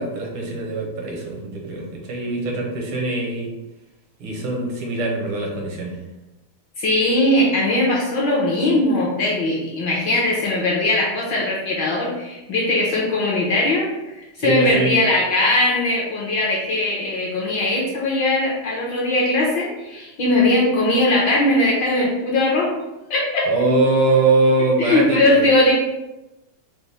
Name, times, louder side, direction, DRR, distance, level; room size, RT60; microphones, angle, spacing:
voice 1, 0.0-3.5 4.2-6.0 14.4-14.9 23.5-25.4, right 2 dB, 75° right, -1 dB, 1.7 m, -22 dB
voice 2, 6.8-22.7 23.1-23.5 24.8-25.7, left 2 dB, 65° left, -4 dB, 1.3 m, -20 dB
5.4 x 2.2 x 3.3 m, 1.0 s
omnidirectional pair, 2.4 m